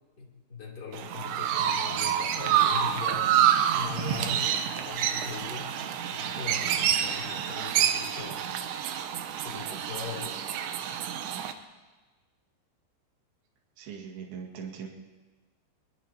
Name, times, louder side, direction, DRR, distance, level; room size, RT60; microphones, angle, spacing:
voice 1, 0.2-8.4 9.4-10.7, left 5 dB, 25° left, -4 dB, 3.1 m, -41 dB
Chirp tweet, 0.9-11.5, right 10 dB, 80° right, 2.8 m, -28 dB
voice 2, 13.8-14.9, right 7 dB, 65° right, 0 dB, 3.6 m, -40 dB
22.5 x 22.0 x 2.9 m, 1.3 s
omnidirectional pair, 5.3 m